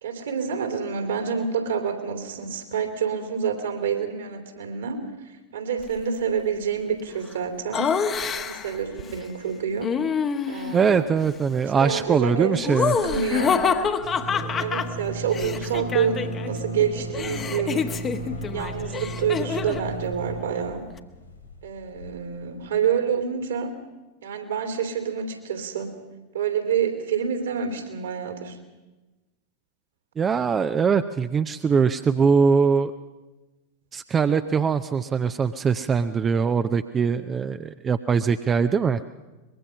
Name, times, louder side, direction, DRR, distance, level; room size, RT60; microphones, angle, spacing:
voice 1, 0.0-7.9 8.3-10.0 10.5-11.1 11.6-13.6 14.6-17.8 18.5-20.9 21.6-23.8 24.2-25.9 26.3-28.6, right 7 dB, 65° right, 6 dB, 2.9 m, -28 dB
sound 1, 7.7-9.9, left 10 dB, 55° left, 1.6 m, -45 dB
Laughter, 7.7-8.8 9.8-10.8 12.6-16.5 16.8-19.9, left 6 dB, 25° left, 1.1 m, -27 dB
voice 2, 10.7-12.9 30.2-32.9 33.9-39.0, right 6 dB, 20° right, 10 dB, 0.6 m, -22 dB
sound 2, 11.1-11.5 11.8-11.9 12.1-22.8, right 2 dB, 90° left, 2.4 m, -36 dB
23.0 x 21.5 x 5.6 m, 1.1 s
figure-of-eight pair, 90°, 0 cm